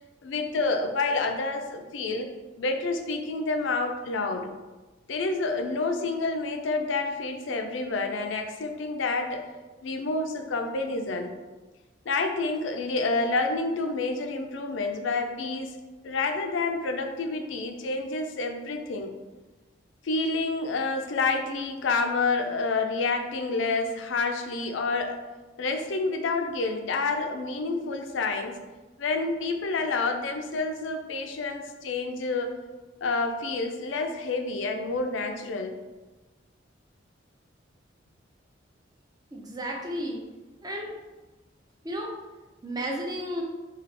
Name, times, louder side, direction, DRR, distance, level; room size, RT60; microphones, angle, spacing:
voice 1, 0.2-2.3 2.6-4.5 5.1-9.5 9.8-11.4 12.1-15.7 16.0-19.2 20.0-25.2 25.6-28.6 29.0-32.6 33.0-35.8, left 3 dB, 80° left, 5 dB, 0.4 m, -28 dB
voice 2, 39.3-40.2 40.6-40.9 41.8-42.1 42.6-43.4, equal, 20° right, 0 dB, 0.5 m, -33 dB
4.0 x 2.4 x 3.3 m, 1.2 s
head